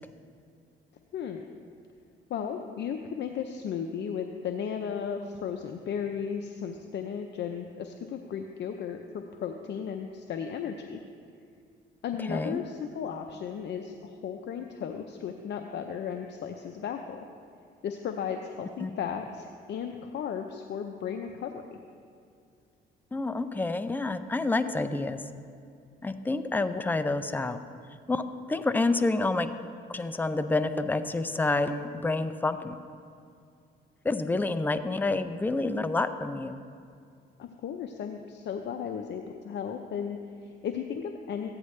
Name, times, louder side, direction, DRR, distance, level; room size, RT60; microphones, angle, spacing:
voice 1, 1.1-1.4 2.3-11.0 12.0-17.2 17.8-21.8 37.4-41.5, left 7 dB, 60° left, 5 dB, 0.6 m, -35 dB
voice 2, 12.3-12.6 18.8-18.9 23.1-25.2 26.0-27.6 28.1-29.5 29.9-32.8 34.0-36.6, left 3 dB, 10° left, 10 dB, 0.5 m, -28 dB
14.5 x 9.7 x 3.2 m, 2.3 s
cardioid pair, 90°, 20 cm